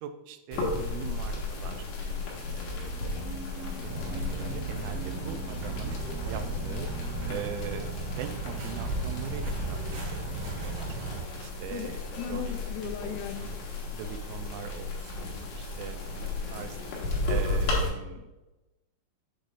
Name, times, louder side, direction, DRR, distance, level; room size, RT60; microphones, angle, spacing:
voice 1, 0.0-3.2 3.5-3.7 4.0-6.0 6.3-6.9 7.3-9.8 10.1-10.9 11.3-12.0 12.3-12.6 13.0-13.6 13.9-16.8 17.3-18.3, right 8 dB, 85° right, 7 dB, 3.1 m, -41 dB
sound 1, 0.5-17.9, left 2 dB, 70° left, 3.7 m, -34 dB
sound 2, 2.4-7.5, right 1 dB, 45° right, 1.9 m, -45 dB
sound 3, 3.8-11.2, right 5 dB, 65° right, 4.3 m, -36 dB
voice 2, 12.2-13.5, left 9 dB, 85° left, 6 dB, 3.3 m, -36 dB
8.5 x 6.4 x 2.6 m, 1.0 s
omnidirectional pair, 5.9 m